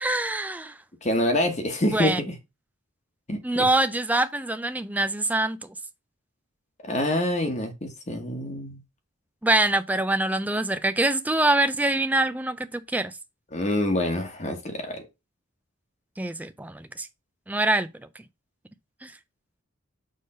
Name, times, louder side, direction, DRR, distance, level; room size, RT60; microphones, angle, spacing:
voice 1, 0.0-0.8 1.9-2.2 3.4-5.7 9.4-13.1 16.2-17.1 17.5-17.9 19.0-19.1, right 2 dB, 5° right, 0.4 m, -24 dB
voice 2, 1.0-2.3 3.3-3.7 6.8-8.8 13.5-15.0, left 1 dB, 30° left, 1.2 m, -26 dB
6.5 x 3.4 x 5.4 m
head